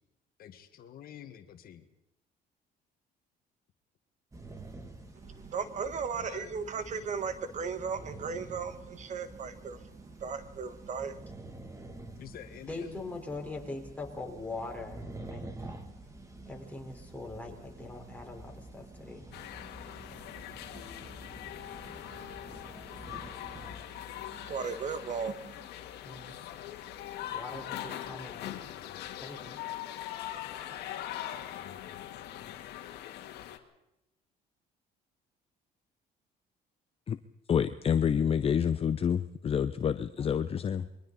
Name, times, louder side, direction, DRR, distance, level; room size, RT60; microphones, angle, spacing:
voice 1, 0.4-1.8 6.1-6.5 6.8-7.2 12.2-13.0, left 10 dB, 60° left, 8 dB, 1.6 m, -48 dB
sound 1, 4.3-23.8, right 2 dB, 20° right, 2.5 m, -48 dB
voice 2, 5.2-11.3 23.9-25.7, right 5 dB, 45° right, 11 dB, 1.4 m, -37 dB
voice 3, 12.7-15.5 16.5-19.3 26.0-26.4 27.3-28.6 29.2-29.6 40.2-40.4 40.8-40.9, left 2 dB, 10° left, 0 dB, 4.5 m, -42 dB
sound 2, 19.3-33.6, left 12 dB, 80° left, 1.9 m, -42 dB
voice 4, 37.5-40.9, left 8 dB, 35° left, 11 dB, 0.7 m, -28 dB
29.0 x 22.5 x 4.1 m, 0.89 s
cardioid pair, 110°, 17 cm